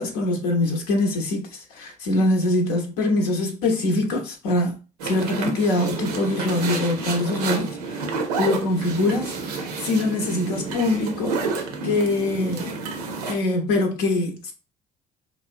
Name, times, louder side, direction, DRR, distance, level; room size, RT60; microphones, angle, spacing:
voice 1, 0.0-4.8 5.0-8.1 8.4-11.4 11.8-12.8 13.3-14.5, left 2 dB, 70° left, 0.6 m, -23 dB
sound 1, 5.0-13.3, right 4 dB, 80° right, 0.5 m, -30 dB
2.9 x 2.0 x 2.4 m
figure-of-eight pair, 55°, 20 cm